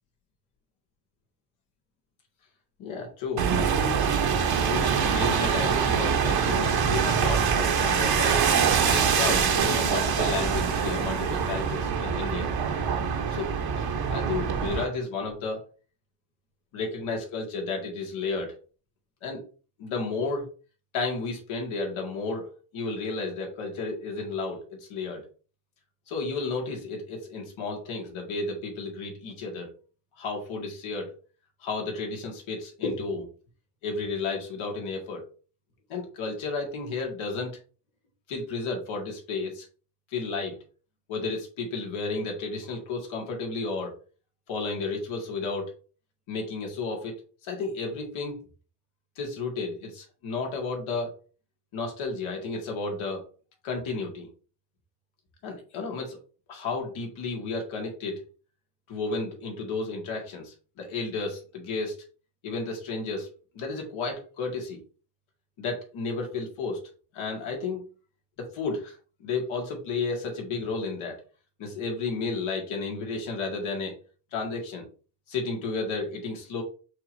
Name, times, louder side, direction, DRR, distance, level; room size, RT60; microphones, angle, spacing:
voice 1, 2.8-4.1 4.6-8.6 8.9-12.5 13.3-13.5 13.8-15.6 16.7-18.5 19.2-19.4 19.8-20.5 20.9-25.2 26.1-29.7 30.2-31.2 31.6-33.3 33.8-35.2 35.9-37.6 38.3-39.7 40.1-40.6 41.1-44.0 44.5-45.7 46.3-48.4 49.2-51.2 51.7-53.2 53.6-54.3 55.4-56.2 56.5-58.2 58.9-62.0 62.4-63.3 63.5-64.8 65.6-66.8 67.1-67.8 68.4-71.2 71.6-74.0 74.3-74.9 75.3-76.6, left 3 dB, 75° left, 1 dB, 1.9 m, -32 dB
sound 1, 3.4-14.8, right 7 dB, 50° right, 1.0 m, -24 dB
6.5 x 3.1 x 2.6 m, 0.37 s
supercardioid pair, 55°, 49 cm